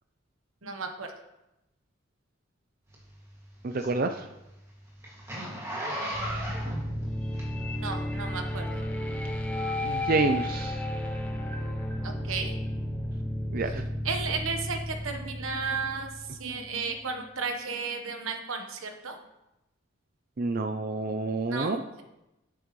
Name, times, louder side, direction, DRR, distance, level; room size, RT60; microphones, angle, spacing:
voice 1, 0.6-1.1 6.0-6.5 7.7-8.8 12.0-12.6 14.0-19.2 21.5-22.0, right 4 dB, 85° right, 5 dB, 1.2 m, -34 dB
Zipper (clothing), 2.9-7.9 8.4-8.6, right 1 dB, 15° right, 2.1 m, -36 dB
voice 2, 3.6-4.2 9.8-10.8 13.5-13.9 20.4-21.8, right 3 dB, 45° right, 7 dB, 0.5 m, -28 dB
sound 1, 6.1-17.0, left 1 dB, 5° left, 0.8 m, -33 dB
10.5 x 8.8 x 3.1 m, 0.93 s
head